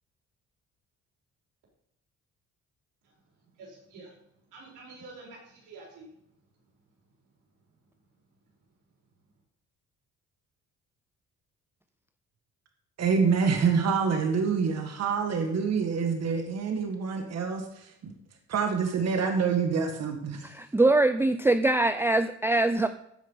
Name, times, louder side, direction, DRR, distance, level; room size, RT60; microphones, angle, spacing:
voice 1, 3.6-4.2 4.5-6.1, right 3 dB, 85° right, -3 dB, 4.5 m, -47 dB
voice 2, 13.0-18.1 18.5-20.5, right 5 dB, 60° right, 4 dB, 1.8 m, -26 dB
voice 3, 20.4-22.9, right 2 dB, 10° right, 10 dB, 0.4 m, -23 dB
14.5 x 5.2 x 5.5 m, 0.77 s
cardioid pair, 90°, 30 cm